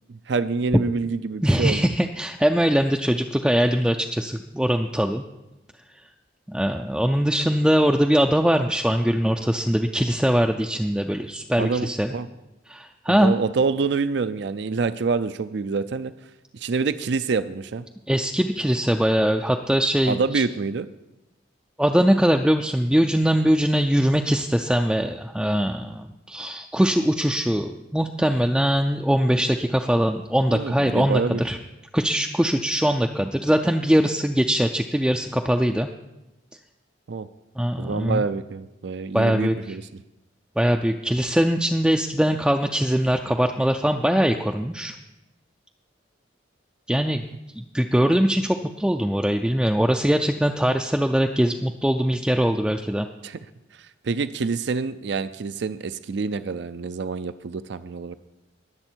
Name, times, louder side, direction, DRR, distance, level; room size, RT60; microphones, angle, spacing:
voice 1, 0.1-1.9 11.6-12.3 13.1-16.1 16.5-17.8 20.1-20.9 30.5-31.4 37.1-37.3 37.8-39.8 53.2-53.4 54.0-58.2, right 4 dB, 60° right, 13 dB, 0.4 m, -26 dB
voice 2, 1.4-5.2 6.5-12.1 12.7-13.3 18.1-20.4 21.8-31.6 31.9-35.9 37.6-38.3 39.1-39.8 40.6-44.9 46.9-47.2 47.6-53.1, equal, 5° right, 3 dB, 0.4 m, -22 dB
21.0 x 7.6 x 4.5 m, 0.97 s
head